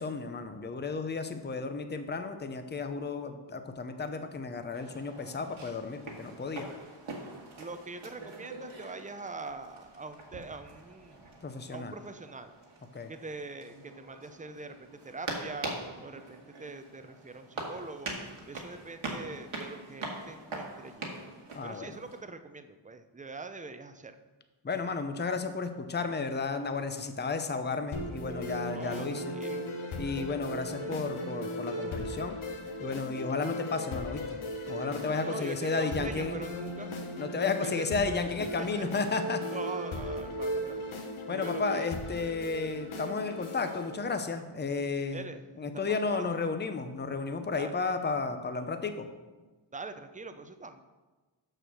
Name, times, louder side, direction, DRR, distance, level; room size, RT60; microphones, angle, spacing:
voice 1, 0.0-6.7 11.4-12.0 12.9-13.1 21.5-22.0 24.6-29.3 30.0-32.4 32.8-34.2 34.7-36.3 37.2-39.4 41.3-45.3 45.6-49.1, left 4 dB, 20° left, 8 dB, 0.7 m, -33 dB
sound 1, 4.7-22.2, right 2 dB, 75° right, 1.8 m, -43 dB
voice 2, 7.6-11.3 11.7-12.5 13.1-18.2 18.5-21.1 21.6-24.1 28.7-29.7 30.6-30.9 35.1-36.9 37.4-38.1 38.4-38.8 39.5-41.9 45.1-45.4 45.7-46.3 47.5-47.7 49.7-50.8, right 3 dB, 15° right, 9 dB, 0.6 m, -43 dB
sound 2, 27.9-43.9, left 1 dB, 75° left, 1.2 m, -37 dB
6.6 x 6.3 x 6.1 m, 1.3 s
cardioid pair, 80°, 49 cm